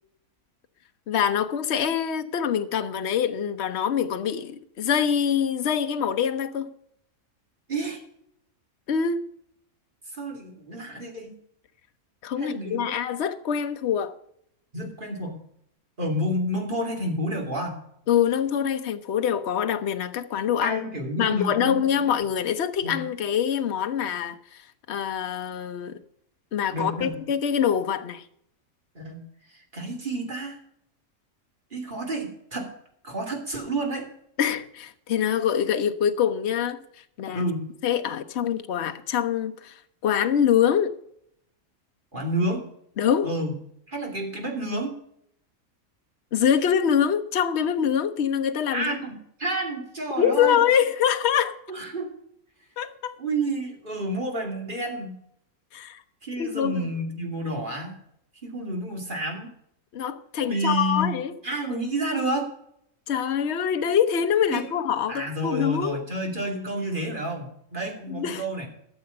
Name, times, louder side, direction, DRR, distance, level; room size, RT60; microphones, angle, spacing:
voice 1, 1.1-6.7 8.9-9.2 12.2-14.1 18.1-20.8 21.2-24.6 24.9-26.0 26.5-28.2 34.4-36.8 37.2-37.5 37.8-40.9 43.0-43.3 46.3-49.0 50.2-51.6 52.8-53.2 55.7-56.0 56.4-56.9 59.9-61.3 63.1-66.0 68.1-68.4, left 8 dB, 50° left, 1.0 m, -24 dB
voice 2, 7.7-8.0 10.1-11.3 12.4-12.9 14.7-15.4 16.0-17.8 20.6-21.8 22.8-23.0 26.7-27.2 28.9-29.2 29.5-30.6 31.7-32.7 33.0-34.1 37.3-37.7 42.1-42.7 43.2-43.5 43.9-44.9 48.7-50.6 51.7-52.1 53.2-55.2 56.2-58.0 58.4-59.5 60.4-61.2 61.4-62.5 64.5-64.7 65.1-68.7, right 1 dB, 35° right, 2.8 m, -30 dB
13.5 x 7.0 x 6.7 m
omnidirectional pair, 1.5 m